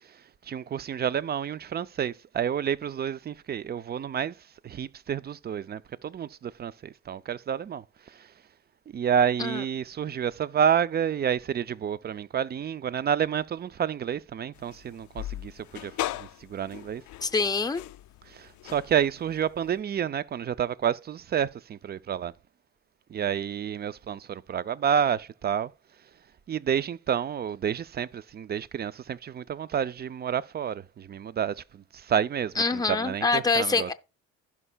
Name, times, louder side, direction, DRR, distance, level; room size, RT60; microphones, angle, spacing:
voice 1, 0.1-4.4 4.6-8.3 8.9-17.0 18.3-22.3 23.1-25.7 26.5-33.9, right 8 dB, 35° right, 0.4 m, -29 dB
sound 1, 14.5-19.8, left 14 dB, 70° left, 0.4 m, -39 dB
voice 2, 17.2-17.8 32.6-33.9, left 4 dB, 15° left, 0.6 m, -25 dB
15.5 x 5.6 x 2.3 m
cardioid pair, 90°, 30 cm